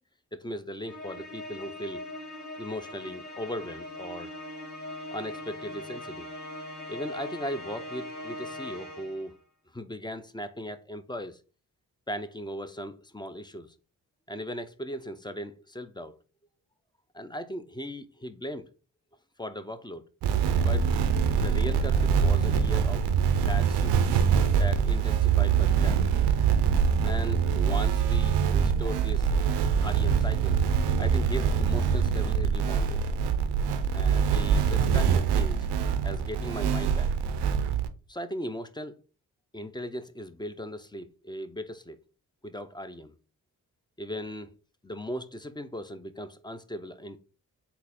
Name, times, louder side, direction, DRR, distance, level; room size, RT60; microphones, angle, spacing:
voice 1, 0.3-2.1 2.6-4.3 5.1-6.3 6.9-9.3 9.7-11.4 12.1-13.7 14.3-16.2 17.1-18.7 19.4-20.0 20.6-21.0 21.4-24.0 24.5-26.1 27.0-29.3 29.8-30.6 31.0-33.0 33.9-35.7 36.0-37.1 38.1-39.0 39.5-42.0 42.4-43.1 44.0-44.5 44.8-47.2, equal, 10° left, 0.4 m, -38 dB
Musical instrument, 0.8-9.3, left 1 dB, 45° left, 1.5 m, -40 dB
sound 1, 20.2-37.9, right 7 dB, 85° right, 0.5 m, -24 dB
3.9 x 2.5 x 4.2 m
supercardioid pair, 40°, 39 cm